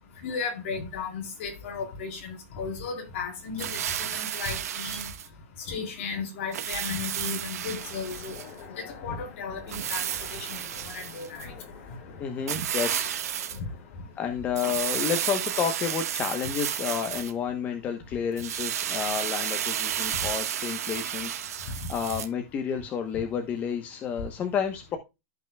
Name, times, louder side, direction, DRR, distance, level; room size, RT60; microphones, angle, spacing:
voice 1, 0.2-5.1 5.7-8.3 8.8-10.0 10.3-10.6 10.9-11.5, left 5 dB, 55° left, 3.9 m, -35 dB
sound 1, 3.6-5.3 6.5-8.5 9.7-11.5 12.5-13.6 14.5-17.3 18.4-22.3, right 10 dB, 90° right, 1.4 m, -32 dB
Train, 7.7-14.7, left 5 dB, 40° left, 2.6 m, -48 dB
voice 2, 12.2-13.1 14.2-25.0, left 7 dB, 20° left, 0.9 m, -30 dB
14.0 x 5.6 x 2.2 m
supercardioid pair, 170°, 8 cm